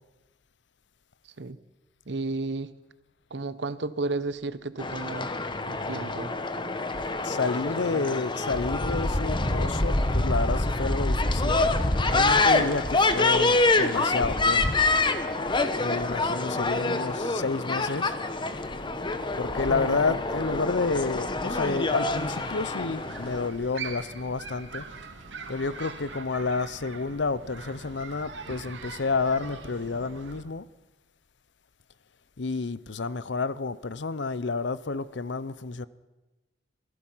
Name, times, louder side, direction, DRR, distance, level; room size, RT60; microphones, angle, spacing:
voice 1, 2.1-2.7 3.3-5.3 5.7-6.4 7.9-8.2 19.7-20.2, right 3 dB, 70° right, 1.0 m, -33 dB
sound 1, 4.8-23.5, left 2 dB, 25° left, 1.1 m, -26 dB
voice 2, 7.2-11.6 12.1-14.8 15.8-18.1 19.4-24.8 25.5-30.7 32.4-35.9, left 4 dB, 70° left, 0.7 m, -30 dB
sound 2, 19.9-30.4, right 4 dB, 90° right, 2.6 m, -43 dB
27.0 x 17.0 x 5.7 m
head